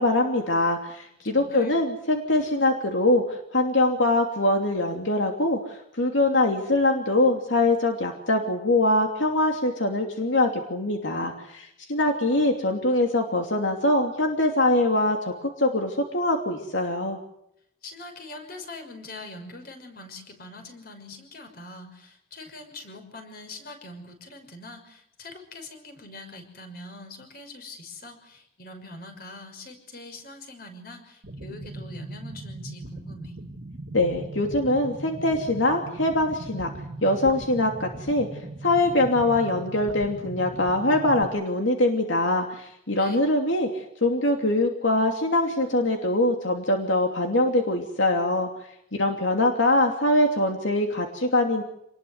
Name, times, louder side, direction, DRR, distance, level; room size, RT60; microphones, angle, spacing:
voice 1, 0.0-17.2 33.9-36.7 37.0-38.3 38.6-48.5 48.9-51.6, left 2 dB, 80° left, 3 dB, 2.9 m, -23 dB
voice 2, 1.2-1.8 17.8-33.3 42.9-43.2, left 2 dB, 50° left, 6 dB, 6.0 m, -43 dB
sound 1, 31.2-41.2, right 2 dB, 60° right, 2.1 m, -39 dB
27.5 x 20.5 x 8.2 m, 0.78 s
head